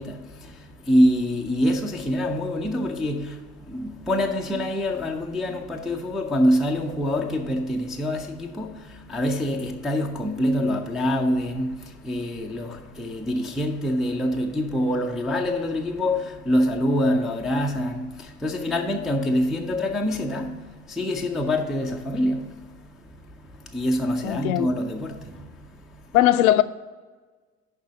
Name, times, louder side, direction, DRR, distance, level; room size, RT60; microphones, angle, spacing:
voice 1, 0.0-26.2, equal, ahead, 0.3 m, -26 dB
voice 2, 24.2-24.7 26.1-26.6, left 14 dB, 65° left, 0.5 m, -18 dB
6.8 x 5.4 x 6.5 m
figure-of-eight pair, 70°, 47 cm